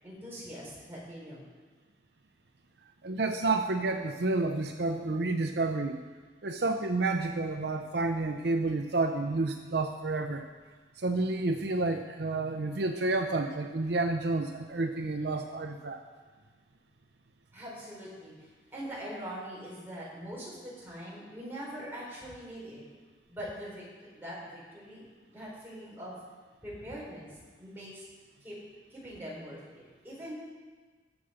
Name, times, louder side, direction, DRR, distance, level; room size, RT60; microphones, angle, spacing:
voice 1, 0.0-1.5 17.5-22.8 23.3-26.1 26.6-28.0 28.4-28.6 28.9-30.3, equal, 10° right, -7 dB, 4.5 m, -43 dB
voice 2, 3.0-6.0 6.4-10.4 11.0-16.0, right 2 dB, 65° right, 5 dB, 0.6 m, -30 dB
19.5 x 6.8 x 5.1 m, 1.4 s
head